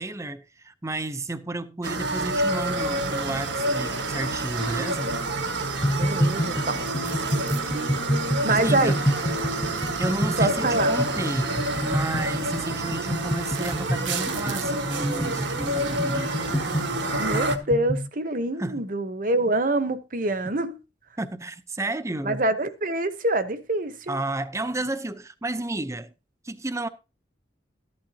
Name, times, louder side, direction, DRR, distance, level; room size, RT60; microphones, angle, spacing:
voice 1, 0.0-5.1 8.5-9.0 10.0-16.4 18.6-18.8 20.4-20.6 21.2-22.4 24.1-26.1 26.4-26.9, right 2 dB, 15° right, 0.7 m, -32 dB
sound 1, 1.8-17.6, right 2 dB, 75° right, 1.5 m, -28 dB
sound 2, 5.8-18.1, equal, 15° left, 0.9 m, -28 dB
voice 2, 6.0-7.1 8.4-9.0 10.4-10.9 17.2-20.8 22.2-24.2, right 2 dB, 45° right, 1.0 m, -26 dB
sound 3, 6.9-7.6 9.1-10.5 11.7-11.9 12.5-12.6 13.1-14.7, right 10 dB, 90° right, 1.1 m, -40 dB
14.0 x 11.5 x 2.8 m
head